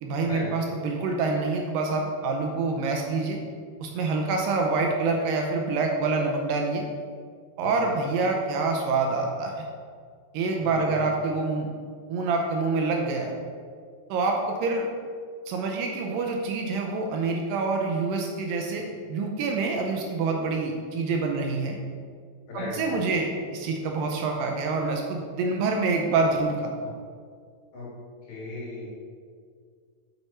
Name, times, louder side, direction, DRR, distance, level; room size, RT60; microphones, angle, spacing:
voice 1, 0.0-3.4 3.8-6.9 7.6-9.7 10.3-11.7 12.1-13.3 14.1-14.9 15.5-21.8 22.5-26.9, right 3 dB, 80° right, 2 dB, 2.2 m, -26 dB
voice 2, 7.6-7.9 10.6-11.1 22.5-23.2 27.7-27.9 28.2-28.9, left 2 dB, 55° left, -5 dB, 3.0 m, -37 dB
6.6 x 6.0 x 4.2 m, 2.1 s
omnidirectional pair, 4.2 m